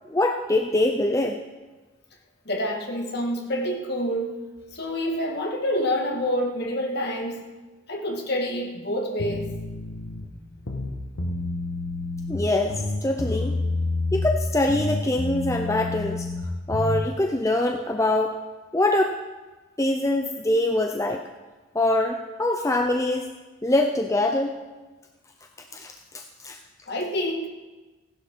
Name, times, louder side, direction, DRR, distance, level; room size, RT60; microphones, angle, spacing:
voice 1, 0.1-1.4 12.3-13.6 14.1-16.3 16.7-18.4 18.7-19.2 19.8-21.3 21.7-23.3 23.6-24.5 25.7-26.6, left 1 dB, 15° left, 4 dB, 0.6 m, -24 dB
voice 2, 2.5-4.4 4.7-7.4 7.9-9.5 26.9-27.5, equal, 50° left, 1 dB, 2.0 m, -27 dB
sound 1, 9.2-10.2 10.6-12.4 12.7-14.4 14.7-17.1, left 2 dB, 80° left, 1.6 m, -28 dB
16.0 x 11.0 x 5.4 m, 1.2 s
head